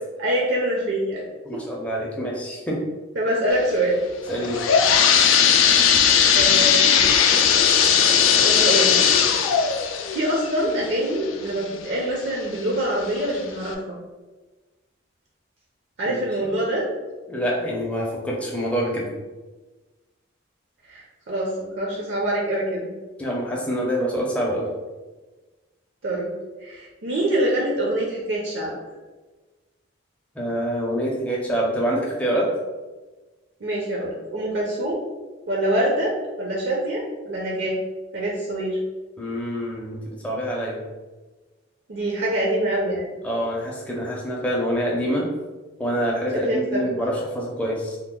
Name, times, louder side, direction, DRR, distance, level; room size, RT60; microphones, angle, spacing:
voice 1, 0.2-1.3 1.5-1.6 3.2-4.0 6.3-7.0 8.3-9.0 10.1-14.0 16.0-16.9 20.9-22.9 26.0-26.3 26.6-28.8 33.6-35.0 35.5-36.1 36.4-37.7 38.1-38.8 41.9-43.1 46.4-46.8, right 1 dB, 60° right, -3 dB, 0.5 m, -25 dB
voice 2, 1.5-2.8 4.3-4.6 16.1-16.2 16.4-16.5 17.3-19.1 23.2-24.7 30.4-32.5 39.2-40.8 43.2-45.2 45.8-48.0, equal, 5° left, -4 dB, 0.5 m, -26 dB
sound 1, 4.3-11.9 12.4-12.5 13.2-13.3 13.7-13.8, left 7 dB, 80° left, 0.3 m, -18 dB
2.8 x 2.0 x 3.6 m, 1.2 s
head